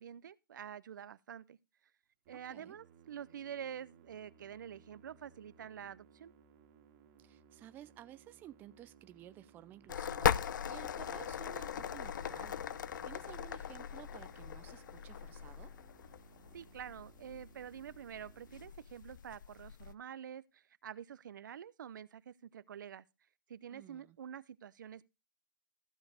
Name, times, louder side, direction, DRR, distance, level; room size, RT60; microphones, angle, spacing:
voice 1, 0.0-1.6 2.3-6.3 16.5-23.0 23.5-25.0, right 9 dB, 65° right, 0.7 m, -47 dB
Musical instrument, 2.3-19.4, right 8 dB, 40° right, 2.0 m, -63 dB
voice 2, 7.2-15.7 23.7-24.2, right 12 dB, 15° right, 0.5 m, -54 dB
sound 1, 9.9-19.9, left 8 dB, 65° left, 0.6 m, -39 dB
15.0 x 5.2 x 5.0 m
hypercardioid pair, 140°, 11 cm